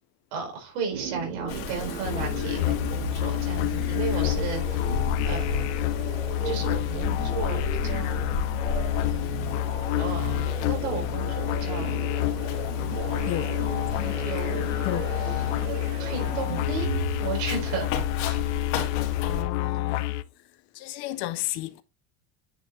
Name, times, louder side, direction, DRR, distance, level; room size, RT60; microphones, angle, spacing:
voice 1, 0.3-4.9 5.2-5.6 6.4-8.4 9.0-9.3 10.0-10.4 10.6-12.0 13.1-14.9 15.1-15.6 16.0-18.6, right 5 dB, 70° right, 4.3 m, -35 dB
sound 1, 0.9-18.0, right 8 dB, 90° right, 1.4 m, -37 dB
Wind, 1.5-19.4, left 4 dB, 60° left, 2.9 m, -35 dB
sound 2, 2.0-20.2, left 16 dB, 85° left, 0.7 m, -28 dB
voice 2, 13.2-13.6 14.0-14.1 14.8-15.1 19.2-20.2 20.7-21.8, left 16 dB, 35° left, 0.4 m, -33 dB
9.6 x 5.5 x 2.9 m
cardioid pair, 175°, 34 cm